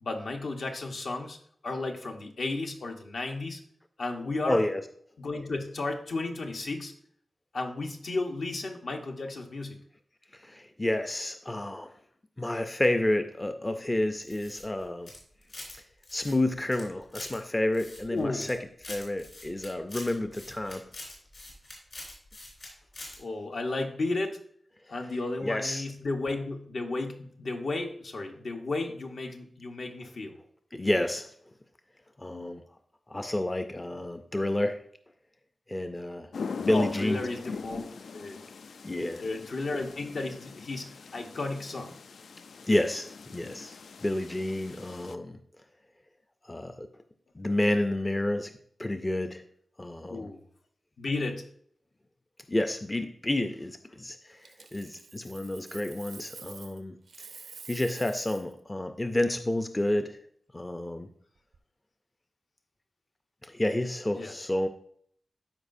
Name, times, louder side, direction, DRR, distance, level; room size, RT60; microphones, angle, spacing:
voice 1, 0.0-1.4 1.6-3.6 4.0-4.6 5.2-6.9 7.5-9.8 18.1-18.5 23.2-24.4 24.9-30.4 36.7-37.8 38.1-38.4 39.2-42.0 50.1-50.4 51.0-51.4 64.1-64.3, left 2 dB, 70° left, 3 dB, 1.0 m, -33 dB
voice 2, 4.5-4.8 10.3-11.9 12.4-15.1 15.7-15.8 16.1-20.8 25.4-25.9 30.7-31.3 32.2-32.6 33.1-34.8 35.7-36.3 36.6-37.2 38.8-39.2 42.7-45.4 46.5-46.9 47.4-48.5 48.8-49.4 49.8-50.3 52.5-57.3 57.7-60.2 60.5-61.1 63.4-64.7, left 1 dB, 20° left, 8 dB, 0.4 m, -30 dB
sound 1, 14.2-15.8 16.0-17.4 17.7-18.5 18.8-22.7 22.9-23.2, left 2 dB, 55° left, 3.6 m, -44 dB
sound 2, 36.3-45.1, left 5 dB, 85° left, 0.3 m, -41 dB
Coin (dropping), 54.4-56.8 57.1-58.5 61.4-61.6, right 5 dB, 85° right, 0.5 m, -48 dB
13.0 x 4.8 x 2.6 m, 0.63 s
wide cardioid pair, 120°, 0 cm